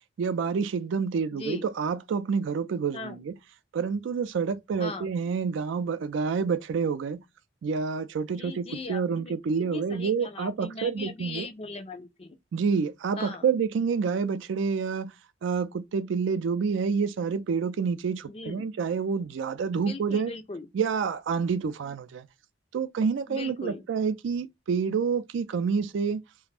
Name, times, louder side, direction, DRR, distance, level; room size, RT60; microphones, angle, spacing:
voice 1, 0.2-3.3 3.7-7.2 7.6-11.5 12.5-15.1 15.4-20.3 20.7-22.3 22.7-26.2, right 5 dB, 70° right, 0.3 m, -28 dB
voice 2, 1.3-1.7 2.9-3.2 4.8-5.1 8.3-12.4 13.2-13.5 18.3-18.7 19.9-20.7 23.3-23.8, left 3 dB, 30° left, 0.4 m, -39 dB
2.4 x 2.0 x 3.3 m
head